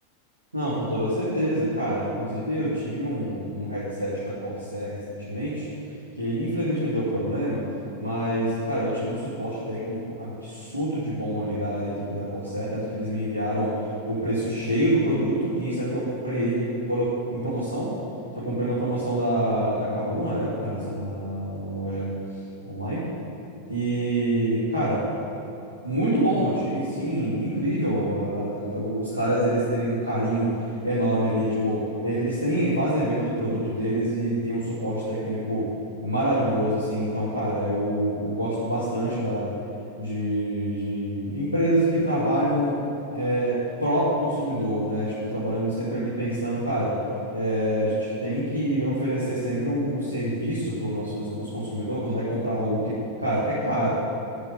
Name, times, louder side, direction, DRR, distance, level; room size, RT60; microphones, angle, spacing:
voice 1, 0.5-5.7 6.2-7.6 8.0-17.9 18.3-22.1 22.6-23.1 23.7-25.1 25.8-35.7 36.0-39.5 40.0-42.7 43.1-47.0 47.3-53.9, right 1 dB, 80° right, -9 dB, 2.5 m, -26 dB
10.5 x 6.6 x 9.1 m, 2.9 s
figure-of-eight pair, 90°, 0 cm